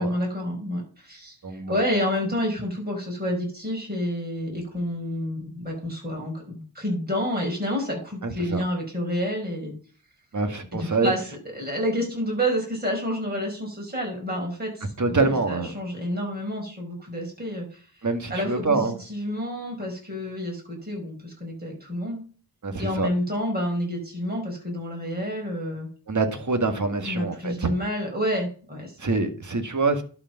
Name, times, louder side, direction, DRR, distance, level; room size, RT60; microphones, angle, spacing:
voice 1, 0.0-1.4 1.7-9.7 10.7-17.9 18.3-22.2 22.8-25.9 27.1-29.0, equal, 25° right, -2 dB, 5.4 m, -29 dB
voice 2, 1.4-1.8 8.2-8.6 10.3-11.1 15.0-15.7 18.0-19.0 22.6-23.1 26.1-27.7 29.0-30.0, right 3 dB, 45° right, 8 dB, 1.9 m, -25 dB
11.5 x 5.1 x 5.9 m, 0.40 s
wide cardioid pair, 80°, 41 cm